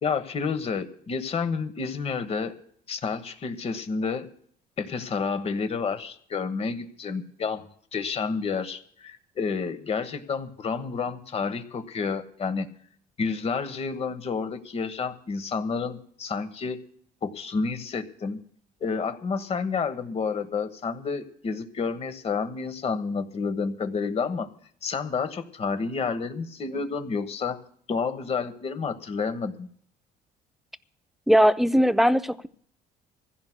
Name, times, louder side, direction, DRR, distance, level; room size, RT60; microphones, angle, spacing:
voice 1, 0.0-2.5 2.9-4.3 4.8-7.7 7.9-12.7 13.2-16.8 17.2-18.4 18.8-24.5 24.8-27.6 27.9-29.7, left 5 dB, 35° left, 1.2 m, -30 dB
voice 2, 31.3-32.5, equal, ahead, 0.5 m, -19 dB
25.5 x 15.5 x 2.2 m
cardioid pair, 110°, 17 cm